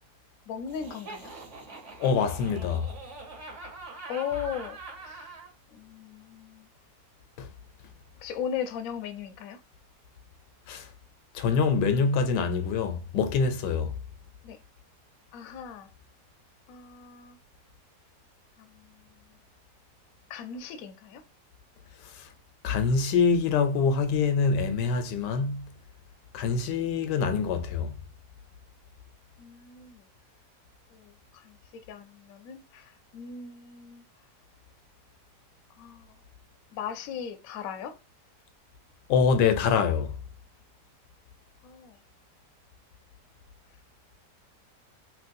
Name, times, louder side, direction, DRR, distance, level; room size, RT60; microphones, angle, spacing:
voice 1, 0.5-1.3 4.1-5.3 5.7-6.7 8.2-9.6 14.4-14.6 15.3-15.9 16.7-17.4 18.6-19.0 20.3-21.2 29.4-30.0 30.9-34.0 35.8-36.1 36.7-38.0 41.6-42.0, left 8 dB, 70° left, 0.9 m, -38 dB
Laughter, 0.7-5.5, right 3 dB, 50° right, 1.2 m, -44 dB
voice 2, 2.0-2.9 7.4-7.5 10.7-10.9 11.3-13.9 22.0-22.3 22.6-25.7 26.3-27.9 39.1-40.2, left 5 dB, 85° left, 1.2 m, -25 dB
3.0 x 3.0 x 2.6 m
omnidirectional pair, 1.8 m